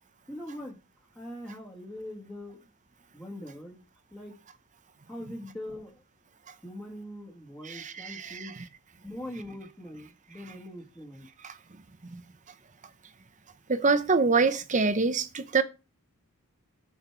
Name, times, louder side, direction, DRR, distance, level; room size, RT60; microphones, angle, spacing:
voice 1, 0.3-0.8 1.2-2.7 3.1-3.8 4.1-4.4 5.1-6.0 6.6-8.5 9.0-11.3, left 1 dB, 10° left, 1.8 m, -42 dB
voice 2, 7.6-8.3 11.4-11.5 12.1-12.2 13.7-15.6, right 4 dB, 35° right, 0.8 m, -25 dB
9.2 x 5.1 x 6.0 m
head